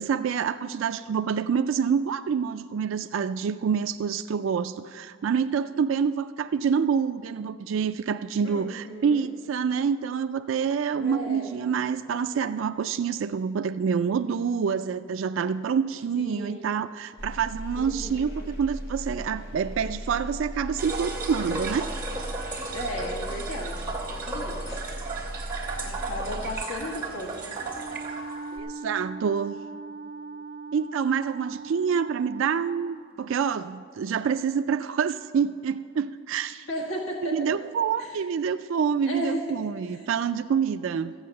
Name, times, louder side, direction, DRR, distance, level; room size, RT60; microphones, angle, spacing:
voice 1, 0.0-21.9 28.5-29.6 30.7-36.7 37.3-41.1, right 6 dB, 70° right, 10 dB, 0.3 m, -27 dB
voice 2, 8.4-9.3 10.9-11.5 16.1-16.7 17.7-18.3 22.7-23.8 24.1-24.8 25.8-27.6 36.7-37.5 38.0-38.2 39.0-39.6 39.9-40.1, equal, 80° left, -1 dB, 1.5 m, -35 dB
sound 1, 17.2-26.6, equal, 50° left, 1.3 m, -37 dB
sound 2, 20.8-28.6, right 3 dB, 10° right, 2.6 m, -35 dB
Wind instrument woodwind instrument, 27.7-33.1, right 4 dB, 25° right, 1.0 m, -39 dB
14.5 x 8.8 x 6.5 m, 2.3 s
head